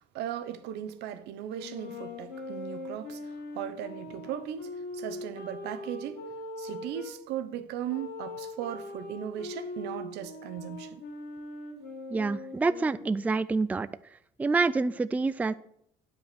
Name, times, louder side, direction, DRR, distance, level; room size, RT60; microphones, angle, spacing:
voice 1, 0.1-6.2 6.6-11.0, right 10 dB, 85° right, 0.8 m, -37 dB
sound 1, 1.5-7.2 7.9-13.4, left 2 dB, 85° left, 2.4 m, -41 dB
voice 2, 12.1-13.9 14.4-15.5, right 3 dB, 10° right, 0.3 m, -27 dB
9.3 x 5.2 x 6.8 m
cardioid pair, 110°, 17 cm